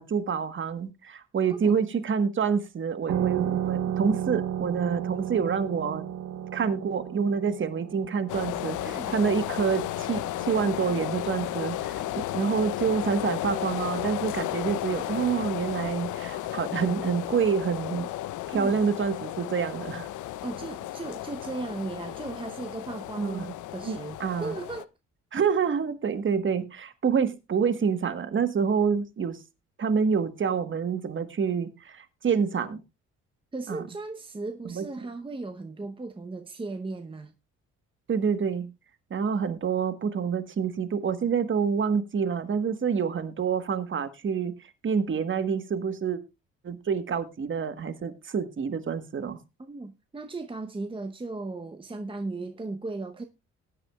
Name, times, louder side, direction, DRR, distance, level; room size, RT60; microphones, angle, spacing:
voice 1, 0.0-6.0 6.5-18.1 18.5-20.1 23.2-23.5 23.8-24.6 25.3-29.4 29.8-32.8 33.7-33.8 34.7-34.8 38.1-38.7 39.1-44.5 44.8-46.2 46.6-49.4, right 6 dB, 40° right, 1.4 m, -27 dB
sound 1, 3.1-12.3, right 10 dB, 65° right, 0.7 m, -34 dB
sound 2, 8.3-24.8, left 14 dB, 80° left, 0.6 m, -34 dB
voice 2, 20.4-24.9 33.5-37.3 49.6-53.2, right 3 dB, 15° right, 0.9 m, -36 dB
19.5 x 9.1 x 2.3 m
cardioid pair, 90°, 30 cm